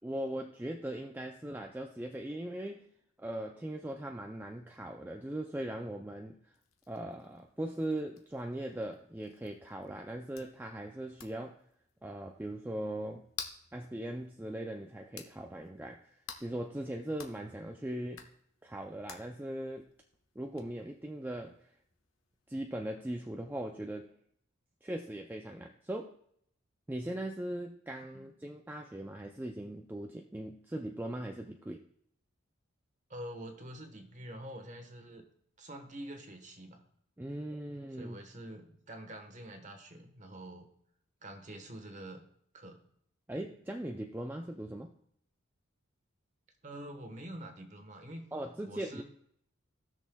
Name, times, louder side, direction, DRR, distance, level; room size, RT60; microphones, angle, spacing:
voice 1, 0.0-2.9 3.2-6.5 6.9-11.6 12.0-13.3 13.7-18.3 18.6-19.9 20.4-21.7 22.5-24.1 24.8-26.2 26.9-31.8 37.2-38.2 43.3-44.9 48.3-49.0, right 1 dB, 10° right, 3 dB, 0.3 m, -39 dB
sound 1, 6.5-22.9, left 7 dB, 70° left, 1.1 m, -53 dB
voice 2, 33.1-35.2 35.6-36.8 38.0-40.7 41.2-42.2 42.5-42.9 46.6-48.3 48.6-49.0, right 1 dB, 35° right, 6 dB, 1.1 m, -46 dB
17.5 x 6.4 x 2.2 m, 0.69 s
head